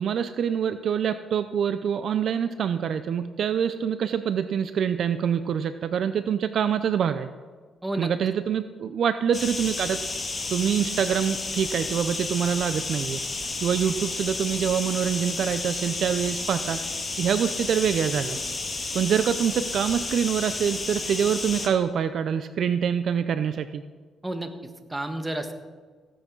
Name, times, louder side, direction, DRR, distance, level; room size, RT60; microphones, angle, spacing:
voice 1, 0.0-7.3 8.0-10.0 10.5-16.8 17.2-18.4 18.9-23.8, right 8 dB, 60° right, 11 dB, 0.6 m, -25 dB
sound 1, 9.3-21.7, left 3 dB, 30° left, 2.3 m, -32 dB
voice 2, 24.2-25.5, right 1 dB, 15° right, 6 dB, 1.5 m, -31 dB
15.5 x 9.0 x 6.1 m, 1.5 s
cardioid pair, 90°, 0 cm